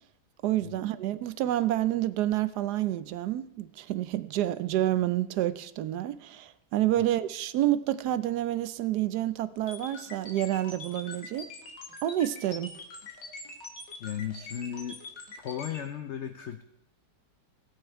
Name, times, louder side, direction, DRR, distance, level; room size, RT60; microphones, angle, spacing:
voice 1, 0.4-11.5 12.0-12.7, right 13 dB, 75° right, 1.1 m, -28 dB
sound 1, 9.7-15.8, left 3 dB, 85° left, 2.4 m, -43 dB
voice 2, 14.0-15.0 15.4-16.6, left 9 dB, 65° left, 0.7 m, -35 dB
17.0 x 8.7 x 4.5 m
omnidirectional pair, 1.9 m